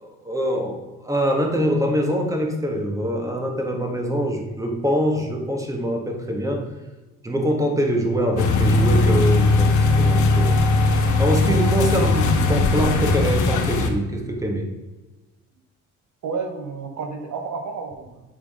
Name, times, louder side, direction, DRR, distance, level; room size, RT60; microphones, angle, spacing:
voice 1, 0.0-6.6 7.2-10.6 11.2-14.7, equal, 10° right, 2 dB, 1.3 m, -24 dB
sound 1, 8.4-13.9, left 3 dB, 75° left, 0.9 m, -19 dB
voice 2, 16.2-18.2, right 4 dB, 70° right, 5 dB, 0.9 m, -31 dB
8.3 x 3.7 x 3.6 m, 1.2 s
cardioid pair, 90°, 30 cm